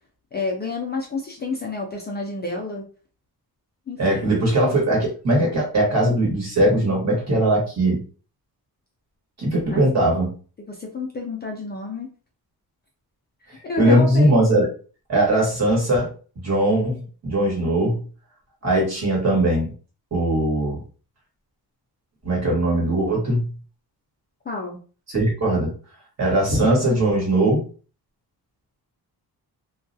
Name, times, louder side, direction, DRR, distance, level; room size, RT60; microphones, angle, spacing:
voice 1, 0.3-2.9 3.9-4.3 9.7-9.9 10.7-12.1 13.6-14.4 24.5-24.8, left 3 dB, 25° left, 0 dB, 0.4 m, -29 dB
voice 2, 4.0-8.0 9.4-10.3 13.8-14.7 15.1-16.1 16.4-18.0 18.6-19.7 20.1-20.8 22.2-23.5 25.1-25.7 26.2-27.6, right 1 dB, 45° right, -2 dB, 1.2 m, -20 dB
2.3 x 2.1 x 2.6 m, 0.38 s
wide cardioid pair, 130°, 38 cm